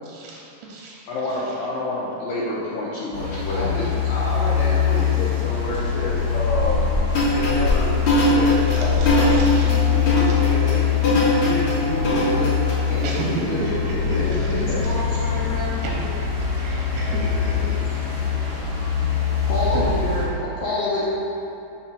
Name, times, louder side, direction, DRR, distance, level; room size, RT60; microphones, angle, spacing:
voice 1, 0.0-1.0 1.3-1.4 3.5-3.6 4.4-4.5 6.3-6.6 7.3-7.8 8.3-10.8 11.4-11.6 12.9-14.6 15.3-15.4 15.8-16.1 16.6-18.0 19.7-19.9 20.6-20.8, right 3 dB, 85° right, -2 dB, 2.7 m, -33 dB
voice 2, 1.1-3.9 14.6-15.8 19.2-21.1, left 2 dB, 85° left, -7 dB, 1.9 m, -27 dB
sound 1, 3.1-20.3, left 7 dB, 60° right, 1.1 m, -23 dB
voice 3, 3.6-6.8 7.2-7.9 8.2-10.8 11.4-12.5 12.9-13.8 14.1-14.8, left 1 dB, 50° left, -7 dB, 2.5 m, -29 dB
sound 2, 7.1-12.7, left 1 dB, 65° left, 1.3 m, -21 dB
5.9 x 4.3 x 5.9 m, 2.7 s
omnidirectional pair, 5.0 m